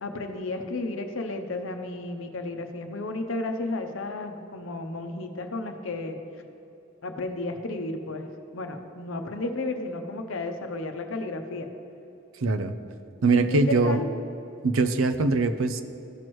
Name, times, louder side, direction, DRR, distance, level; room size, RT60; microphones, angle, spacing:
voice 1, 0.0-6.2 7.0-8.3 8.5-11.7 13.3-14.1, left 2 dB, 70° left, 6 dB, 0.8 m, -32 dB
voice 2, 12.4-12.7 13.2-14.0 14.6-15.8, right 3 dB, 75° right, 9 dB, 0.5 m, -22 dB
15.0 x 6.1 x 3.1 m, 2.9 s
head